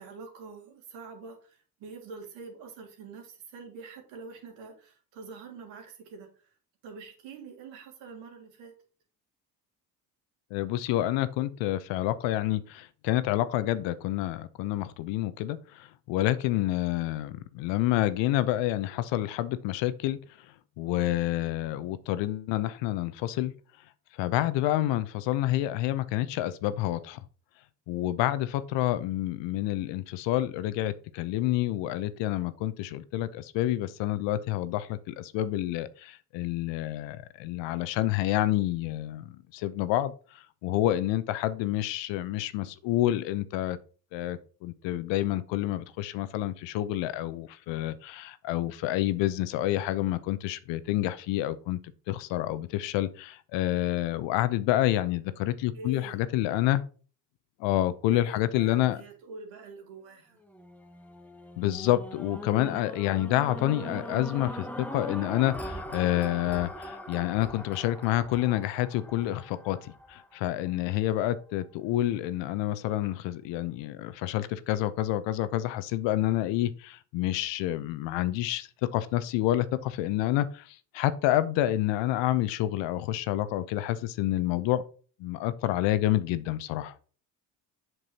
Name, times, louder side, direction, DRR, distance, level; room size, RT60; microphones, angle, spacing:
voice 1, 0.0-6.3 6.8-8.7 55.7-56.2 58.1-60.4, right 4 dB, 65° right, 2.3 m, -45 dB
voice 2, 10.5-20.2 20.8-23.5 24.2-27.2 27.9-40.1 40.6-43.8 44.1-51.8 52.1-56.8 57.6-59.0 61.6-84.8 85.2-86.9, left 14 dB, 60° left, 0.8 m, -28 dB
sound 1, 60.5-70.7 71.3-71.4, equal, 5° left, 1.2 m, -41 dB
7.8 x 6.1 x 2.9 m
hypercardioid pair, 55°, 50 cm